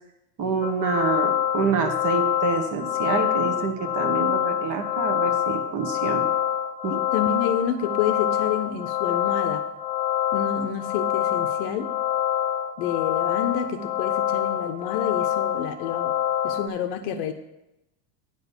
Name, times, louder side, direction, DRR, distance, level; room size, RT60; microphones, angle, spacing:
voice 1, 0.4-6.3 6.8-7.0, right 5 dB, 35° right, 7 dB, 1.2 m, -27 dB
sound 1, 0.6-16.7, left 10 dB, 25° left, 0.3 m, -26 dB
voice 2, 6.9-9.6 10.3-11.9 12.8-16.2 16.4-17.3, left 8 dB, 55° left, 7 dB, 0.8 m, -29 dB
9.8 x 4.0 x 7.1 m, 0.92 s
supercardioid pair, 120°, 50 cm